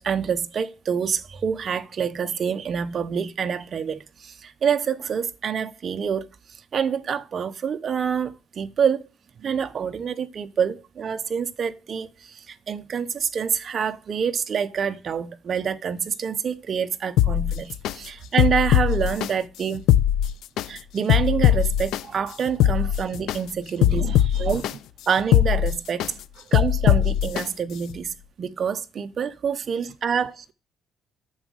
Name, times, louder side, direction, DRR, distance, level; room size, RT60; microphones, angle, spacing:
voice 1, 0.0-6.3 6.7-9.0 9.4-12.1 12.5-19.8 20.7-24.0 24.4-24.6 25.1-26.1 26.5-28.1 28.4-30.4, right 7 dB, 35° right, 0.9 m, -26 dB
sound 1, 17.2-17.9 18.4-19.3 19.7-20.7 21.1-22.0 22.5-23.4 23.8-24.7 25.2-26.1 26.5-27.4 27.9-28.0, left 12 dB, 80° left, 0.5 m, -20 dB
voice 2, 23.7-24.8 26.0-26.5 29.8-30.0, right 9 dB, 50° right, 0.5 m, -42 dB
9.5 x 7.2 x 6.4 m
cardioid pair, 175°, 0 cm